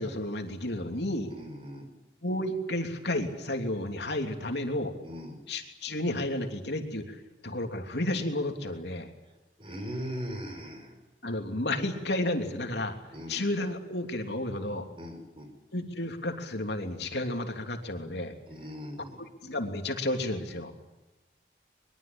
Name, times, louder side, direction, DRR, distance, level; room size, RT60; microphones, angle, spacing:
voice 1, 0.0-1.3 2.2-4.9 5.5-7.2 7.4-9.1 11.2-13.0 13.3-14.9 15.7-18.3 19.4-20.7, left 1 dB, 75° left, 4 dB, 3.0 m, -32 dB
voice 2, 1.2-1.9 5.0-5.4 9.6-10.9 13.1-13.4 15.0-15.5 18.5-19.2, equal, 30° right, 7 dB, 4.4 m, -39 dB
23.0 x 22.5 x 8.8 m, 1.0 s
head